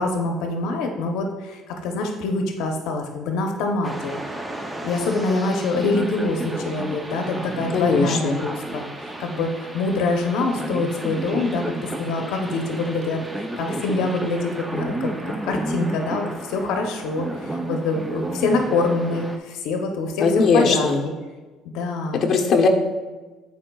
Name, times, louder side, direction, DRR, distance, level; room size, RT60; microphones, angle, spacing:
voice 1, 0.0-4.2 4.8-15.1 15.4-20.9 21.7-22.2, left 3 dB, 80° left, 3 dB, 0.7 m, -25 dB
sound 1, 3.8-19.4, right 1 dB, 10° right, 0.5 m, -32 dB
voice 2, 7.7-8.4 20.2-21.0 22.2-22.7, left 4 dB, 45° left, 1 dB, 0.8 m, -19 dB
10.5 x 4.6 x 2.3 m, 1.2 s
cardioid pair, 125°, 0 cm